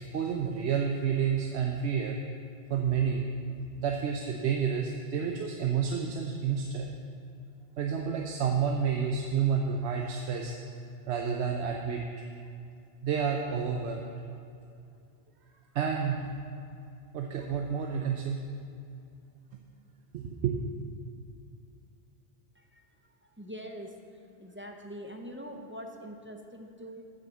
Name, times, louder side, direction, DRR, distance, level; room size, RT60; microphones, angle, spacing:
voice 1, 0.0-2.2 2.7-3.3 3.8-6.9 7.8-10.5 11.1-12.2 13.0-14.1 15.7-16.2 17.1-18.4 20.1-20.6, right 7 dB, 80° right, 2 dB, 0.9 m, -30 dB
voice 2, 23.4-23.9 24.4-27.0, equal, 15° right, 2 dB, 0.6 m, -43 dB
8.0 x 6.6 x 7.3 m, 2.5 s
omnidirectional pair, 1.1 m